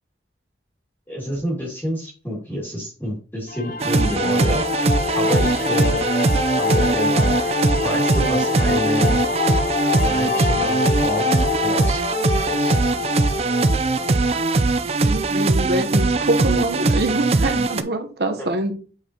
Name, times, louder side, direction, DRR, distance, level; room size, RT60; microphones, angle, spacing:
voice 1, 1.1-4.9 5.1-6.0 6.6-7.6 7.8-9.2 10.0-11.2 11.6-12.0 12.5-12.9 18.4-18.5, left 1 dB, 15° left, 2.4 m, -28 dB
sound 1, 3.5-14.5, left 5 dB, 50° left, 0.5 m, -25 dB
sound 2, 3.8-17.8, right 3 dB, 35° right, 0.4 m, -20 dB
voice 2, 15.1-18.7, right 1 dB, 65° right, 0.9 m, -24 dB
8.1 x 4.6 x 2.9 m
head